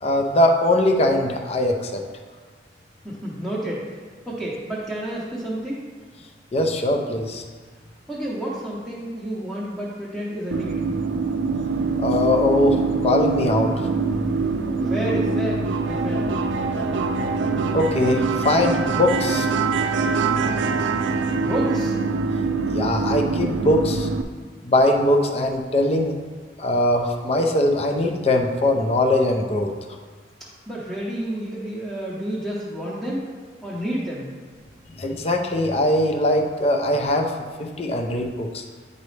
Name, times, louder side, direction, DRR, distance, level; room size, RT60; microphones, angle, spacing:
voice 1, 0.0-2.0 6.5-7.4 12.0-13.9 17.7-19.5 22.7-24.1 24.6-26.2 26.6-29.7 35.0-37.3 37.6-38.6, left 1 dB, 35° left, 3 dB, 0.5 m, -21 dB
voice 2, 3.0-4.0 4.3-5.8 8.1-10.9 14.8-16.3 21.4-22.0 30.4-33.2 33.6-34.3, right 1 dB, ahead, -8 dB, 0.8 m, -30 dB
sound 1, 10.5-24.2, right 4 dB, 80° right, 0.4 m, -24 dB
9.2 x 4.0 x 3.2 m, 1.5 s
head